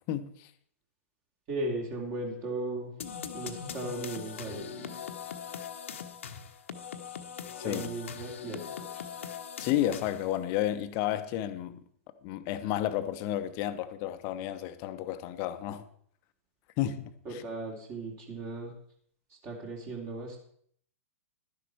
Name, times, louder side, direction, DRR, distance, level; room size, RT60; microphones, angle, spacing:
voice 1, 0.1-0.5 7.6-7.8 9.6-11.8 12.2-15.8 16.8-17.4, left 12 dB, 35° left, 1.0 m, -32 dB
voice 2, 1.5-2.9 3.3-5.0 7.6-8.6 8.9-9.2 17.2-18.7 19.4-20.4, right 2 dB, 30° right, 3.0 m, -37 dB
sound 1, 3.0-10.4, left 8 dB, 60° left, 1.1 m, -41 dB
12.0 x 10.0 x 4.6 m
figure-of-eight pair, 105°, 8 cm